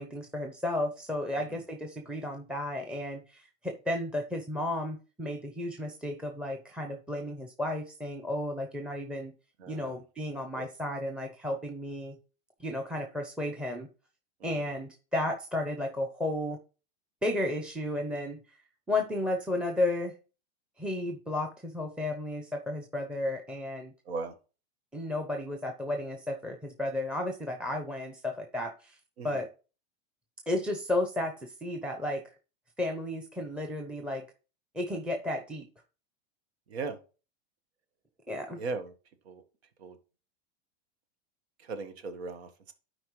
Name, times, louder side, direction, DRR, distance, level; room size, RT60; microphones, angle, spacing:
voice 1, 0.0-9.3 9.7-12.2 12.6-13.9 14.4-16.6 17.2-18.6 18.9-20.1 20.8-23.9 24.9-29.0 29.2-29.5 30.5-32.2 32.8-34.3 34.7-35.7 38.3-38.6, left 1 dB, 5° right, 5 dB, 0.7 m, -33 dB
voice 2, 9.6-10.0 10.5-10.7 14.4-14.7 24.0-24.4 29.2-29.4 36.7-37.0 38.6-38.9 39.2-39.4 39.8-40.0 41.6-42.7, right 4 dB, 90° right, 9 dB, 1.4 m, -38 dB
11.5 x 4.9 x 3.1 m, 0.35 s
supercardioid pair, 135°, 31 cm